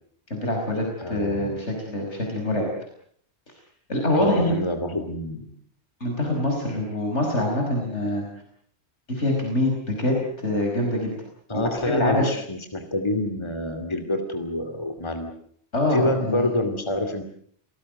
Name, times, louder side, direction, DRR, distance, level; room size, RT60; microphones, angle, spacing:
voice 1, 0.3-2.7 3.9-4.5 6.0-8.2 9.1-11.1 11.5-12.3 15.7-16.5, left 1 dB, 85° left, 1 dB, 5.6 m, -25 dB
voice 2, 1.0-1.5 4.1-5.5 11.5-15.3 15.9-17.2, left 1 dB, 25° left, 7 dB, 2.7 m, -27 dB
28.5 x 19.0 x 7.8 m, 0.62 s
omnidirectional pair, 1.2 m